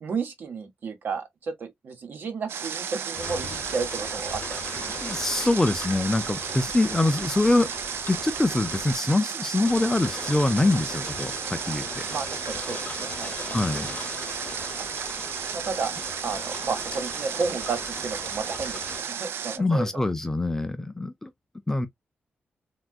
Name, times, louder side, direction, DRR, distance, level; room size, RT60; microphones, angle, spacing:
voice 1, 0.0-4.9 12.1-13.6 15.5-15.9 16.2-18.8 19.1-20.0, right 4 dB, 55° right, 0.9 m, -32 dB
Water, 2.5-19.6, right 7 dB, 85° right, 0.4 m, -33 dB
sound 1, 3.1-9.0 9.6-19.0, left 5 dB, 40° left, 0.7 m, -40 dB
voice 2, 5.0-7.7 8.1-12.0 13.5-13.9 19.6-21.3 21.7-21.9, left 2 dB, 10° left, 0.3 m, -24 dB
3.6 x 2.4 x 2.3 m
wide cardioid pair, 175°, 4 cm